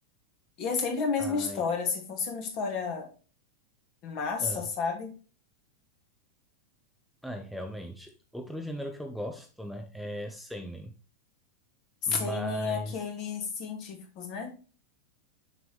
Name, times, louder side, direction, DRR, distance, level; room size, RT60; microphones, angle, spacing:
voice 1, 0.6-3.1 4.0-5.1 12.0-14.5, left 5 dB, 40° left, 3 dB, 2.3 m, -31 dB
voice 2, 1.2-1.6 4.4-4.7 7.2-10.9 12.1-13.0, equal, ahead, 4 dB, 0.6 m, -37 dB
6.8 x 6.0 x 3.2 m, 0.36 s
figure-of-eight pair, 90°, 0 cm